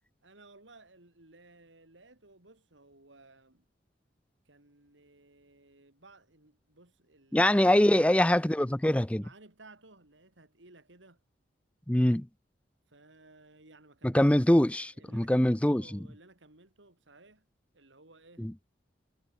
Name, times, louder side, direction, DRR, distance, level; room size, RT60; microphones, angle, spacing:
voice 1, 0.2-3.7 4.5-7.6 7.9-8.3 9.1-11.2 12.9-14.3 14.9-17.5 17.7-18.5, right 2 dB, 85° right, 3.8 m, -57 dB
voice 2, 7.3-9.2 11.9-12.3 14.0-16.0 18.4-18.5, left 1 dB, 5° left, 0.5 m, -24 dB
head